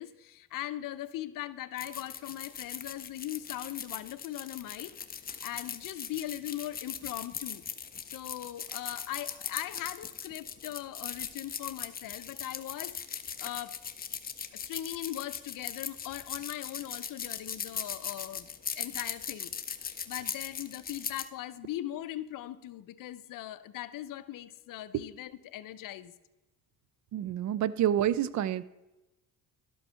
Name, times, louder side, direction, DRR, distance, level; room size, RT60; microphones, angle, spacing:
voice 1, 0.0-7.6 8.1-13.8 14.5-19.5 20.1-26.1 27.5-27.7, left 13 dB, 60° left, 0.6 m, -40 dB
sound 1, 1.8-21.3, left 7 dB, 25° left, 0.6 m, -39 dB
voice 2, 27.1-28.6, right 11 dB, 50° right, 0.4 m, -28 dB
12.0 x 5.4 x 5.6 m
cardioid pair, 135°, 36 cm